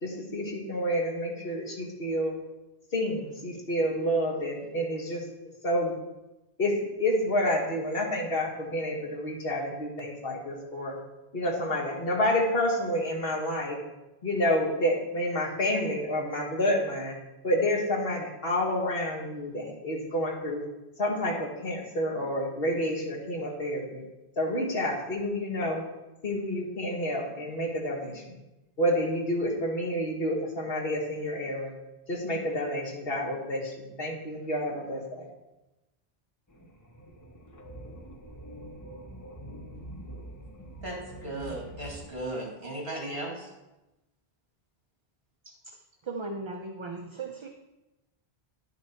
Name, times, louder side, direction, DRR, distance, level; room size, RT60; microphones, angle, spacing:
voice 1, 0.0-2.4 2.9-5.2 5.6-5.9 6.6-11.0 11.3-13.8 14.2-17.2 17.4-20.6 21.0-24.0 24.4-25.8 26.2-28.4 28.8-31.7 32.1-35.3, left 1 dB, 70° left, 0 dB, 1.8 m, -29 dB
sound 1, 36.5-42.2, right 1 dB, 20° left, 0.8 m, -45 dB
voice 2, 40.8-43.5 45.5-45.6, right 1 dB, 70° right, 0 dB, 2.4 m, -36 dB
voice 3, 46.0-47.5, right 3 dB, 35° right, 4 dB, 0.5 m, -37 dB
10.5 x 6.0 x 4.3 m, 1.0 s
omnidirectional pair, 1.0 m